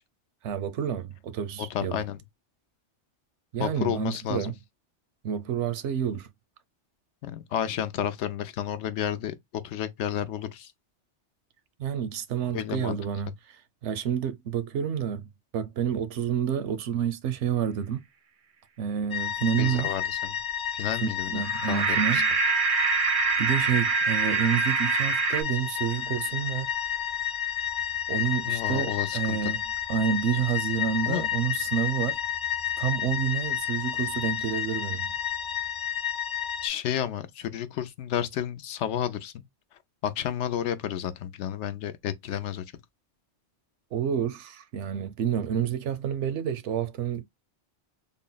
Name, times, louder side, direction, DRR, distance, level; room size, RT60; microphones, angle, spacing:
voice 1, 0.4-2.0 3.5-4.5 5.2-6.3 11.8-13.3 13.8-15.2 15.5-18.0 18.8-19.9 21.0-22.3 23.4-26.7 28.1-29.6 29.9-32.2 32.8-35.1 43.9-47.2, right 8 dB, 75° right, 0.9 m, -29 dB
voice 2, 1.7-2.2 3.6-4.5 7.2-10.7 12.5-13.0 19.6-20.4 20.7-21.3 21.7-22.2 28.5-29.5 31.1-31.2 36.6-39.4 40.0-42.6, left 10 dB, 80° left, 0.9 m, -31 dB
sound 1, 19.1-36.7, left 10 dB, 50° left, 0.7 m, -31 dB
sound 2, 21.4-25.4, right 6 dB, 55° right, 0.6 m, -25 dB
3.7 x 2.0 x 3.9 m
omnidirectional pair, 1.2 m